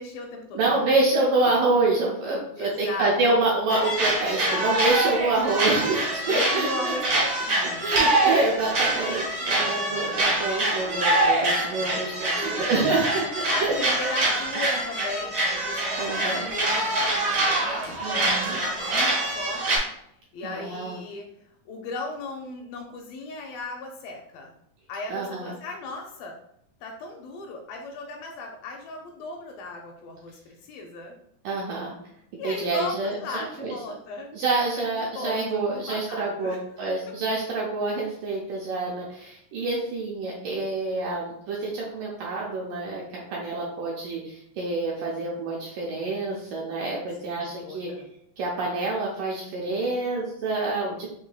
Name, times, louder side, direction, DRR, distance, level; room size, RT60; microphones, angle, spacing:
voice 1, 0.0-1.6 2.6-3.5 6.3-8.1 12.4-13.2 13.5-19.9 20.3-24.5 24.9-26.3 26.8-31.2 32.4-34.3 35.0-36.8 47.2-48.1, left 3 dB, 80° left, 2 dB, 2.1 m, -37 dB
voice 2, 0.5-6.9 7.8-13.8 16.0-16.4 18.0-18.6 20.4-21.0 25.1-25.5 31.5-31.9 32.4-33.8 34.3-47.9 48.4-51.1, right 3 dB, 80° right, -3 dB, 1.9 m, -27 dB
sound 1, 3.7-19.8, right 2 dB, 65° right, 1.0 m, -25 dB
6.9 x 2.8 x 2.3 m, 0.73 s
omnidirectional pair, 4.3 m